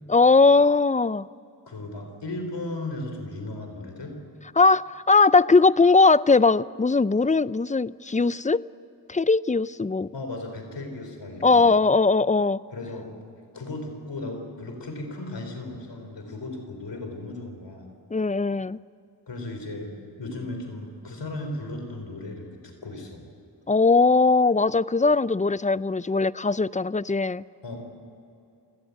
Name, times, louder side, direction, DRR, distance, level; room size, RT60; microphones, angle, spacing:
voice 1, 0.1-1.3 4.6-8.6 9.1-10.1 11.4-12.6 18.1-18.8 23.7-27.4, left 3 dB, 20° left, 18 dB, 0.5 m, -20 dB
voice 2, 1.7-4.2 10.1-11.7 12.7-13.1 13.5-17.9 19.3-19.9 20.2-23.2 27.6-27.8, left 2 dB, 90° left, 4 dB, 4.0 m, -36 dB
29.0 x 17.0 x 8.3 m, 2.6 s
cardioid pair, 45°, 41 cm